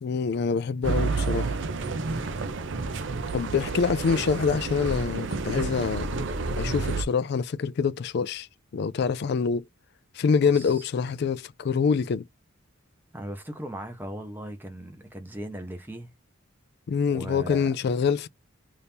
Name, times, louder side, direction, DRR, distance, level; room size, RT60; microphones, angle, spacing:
voice 1, 0.0-1.5 3.3-6.1 6.6-8.5 8.7-9.6 10.1-12.2 16.9-18.3, left 5 dB, 55° left, 0.3 m, -25 dB
sound 1, 0.8-7.0, right 3 dB, 60° right, 0.5 m, -30 dB
voice 2, 2.0-2.3 10.4-10.9 13.1-16.1 17.1-17.7, right 1 dB, 10° right, 0.8 m, -38 dB
2.8 x 2.6 x 3.4 m
head